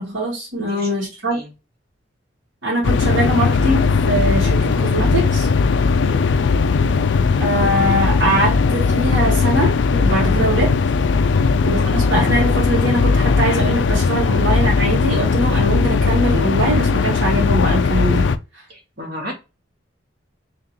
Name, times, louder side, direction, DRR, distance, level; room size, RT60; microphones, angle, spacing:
voice 1, 0.0-1.4 2.6-5.5 7.4-10.7 11.6-18.3, right 1 dB, 90° right, 2.2 m, -22 dB
sound 1, 2.8-18.4, left 4 dB, 70° left, 0.4 m, -18 dB
voice 2, 5.8-6.3 11.3-11.5 18.7-19.3, equal, 55° right, 1.9 m, -34 dB
3.8 x 3.5 x 2.9 m
head